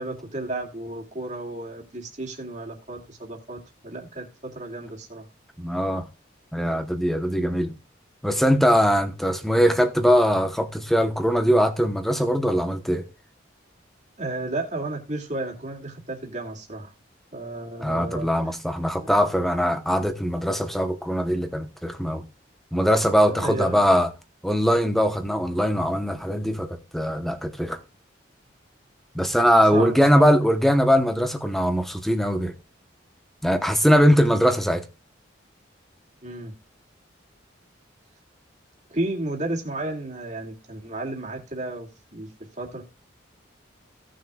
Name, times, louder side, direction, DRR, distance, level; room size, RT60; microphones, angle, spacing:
voice 1, 0.0-3.6 3.8-5.3 14.2-16.9 17.3-18.3 19.0-19.1 23.2-23.9 29.7-30.3 36.2-36.5 38.9-42.3 42.6-42.8, right 2 dB, 35° right, 2.3 m, -32 dB
voice 2, 5.6-6.1 6.5-7.7 8.2-13.1 17.8-22.3 22.7-24.1 24.4-27.8 29.1-32.5 33.4-34.8, equal, ahead, 0.9 m, -21 dB
17.0 x 6.4 x 2.3 m
head